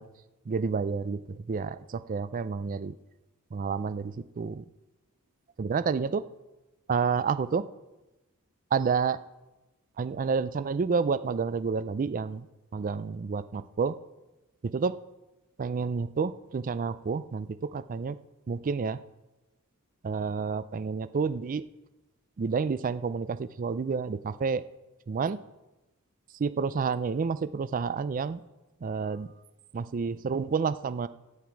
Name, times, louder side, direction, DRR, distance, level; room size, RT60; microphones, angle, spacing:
voice 1, 0.5-3.0 3.5-4.6 5.6-6.3 6.9-7.7 8.7-9.2 10.0-12.5 12.7-14.0 14.6-15.0 15.6-18.2 18.5-19.0 20.0-21.6 22.4-24.6 25.1-25.4 26.4-28.4 28.8-29.3 29.7-31.1, right 5 dB, 35° right, 14 dB, 0.4 m, -29 dB
13.0 x 9.5 x 4.6 m, 1.0 s
head